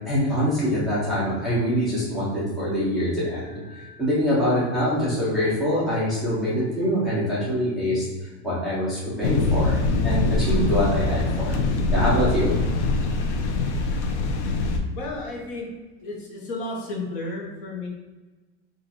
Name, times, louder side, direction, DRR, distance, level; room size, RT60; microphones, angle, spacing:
voice 1, 0.1-3.6 4.0-9.8 10.0-11.5 11.9-12.6, equal, ahead, -11 dB, 0.7 m, -24 dB
voice 2, 3.4-4.0 9.3-9.7 14.9-15.7 16.0-17.9, left 2 dB, 45° left, -1 dB, 1.0 m, -34 dB
sound 1, 9.2-14.8, left 3 dB, 70° left, 0.8 m, -23 dB
4.4 x 2.5 x 4.1 m, 1.2 s
supercardioid pair, 175°, 35 cm